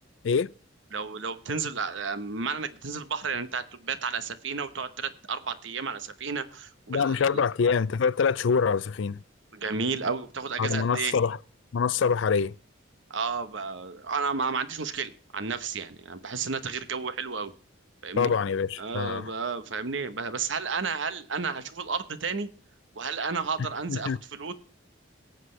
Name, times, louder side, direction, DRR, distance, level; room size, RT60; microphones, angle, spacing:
voice 1, 0.9-7.4 9.5-11.1 13.1-17.5 18.0-18.3 18.8-22.5 22.9-24.5, right 5 dB, 70° right, 1.0 m, -32 dB
voice 2, 6.9-9.2 10.6-11.4 11.7-12.5 18.2-19.3 23.9-24.2, left 6 dB, 70° left, 0.4 m, -25 dB
18.0 x 7.7 x 3.3 m
head